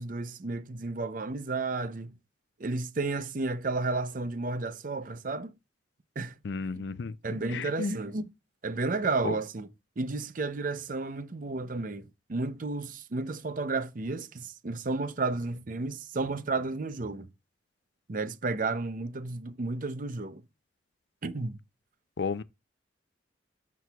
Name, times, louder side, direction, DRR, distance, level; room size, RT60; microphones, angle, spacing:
voice 1, 0.0-2.1 2.6-5.5 6.2-6.4 6.8-6.9 7.2-8.2 8.6-9.7 10.0-17.3 18.1-20.4 21.2-21.6, right 3 dB, 45° right, 0.6 m, -32 dB
voice 2, 6.4-7.1 7.5-7.9 9.2-9.4 22.2-22.4, left 4 dB, 65° left, 0.5 m, -32 dB
12.5 x 6.0 x 2.3 m
head